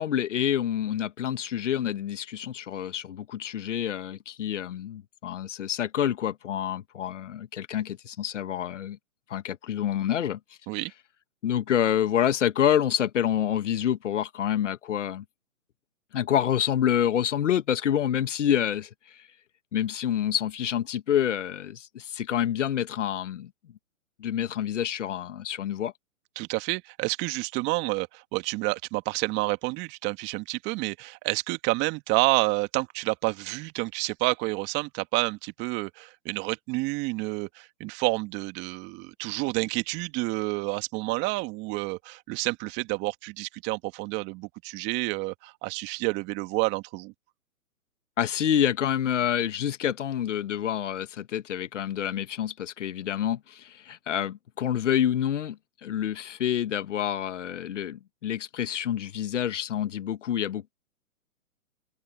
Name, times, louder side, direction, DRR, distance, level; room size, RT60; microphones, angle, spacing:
voice 1, 0.0-9.0 9.3-10.4 11.4-15.2 16.1-19.3 19.7-23.5 24.2-25.9 48.2-60.7, left 10 dB, 60° left, 1.8 m, -27 dB
voice 2, 26.4-47.1, right 23 dB, 25° right, 2.1 m, -29 dB
hypercardioid pair, 135°, 42 cm